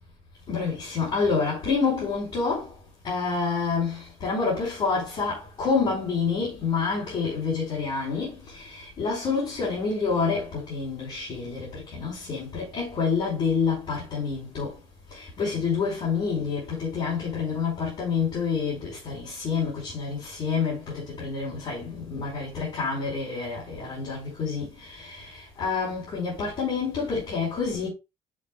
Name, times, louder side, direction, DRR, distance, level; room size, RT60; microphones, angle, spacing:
voice 1, 0.5-2.7 3.0-14.7 15.1-25.3 25.6-27.9, left 5 dB, 50° left, 5.1 m, -28 dB
8.5 x 7.4 x 2.4 m
cardioid pair, 135°, 12 cm